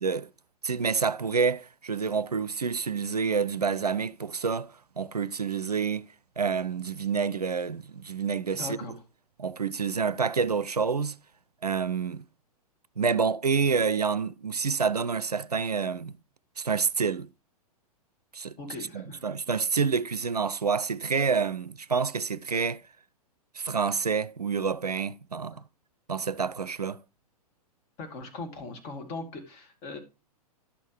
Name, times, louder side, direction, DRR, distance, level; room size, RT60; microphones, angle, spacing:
voice 1, 0.6-6.1 6.4-8.8 9.4-11.2 11.6-12.2 13.0-16.1 16.6-17.3 18.3-18.5 18.9-22.8 23.5-25.6 26.1-27.0, right 5 dB, 85° right, 0.4 m, -28 dB
voice 2, 8.5-9.0 18.6-19.2 25.5-25.6 28.0-30.0, left 3 dB, 35° left, 2.4 m, -39 dB
11.5 x 6.3 x 3.0 m
figure-of-eight pair, 105°, 20 cm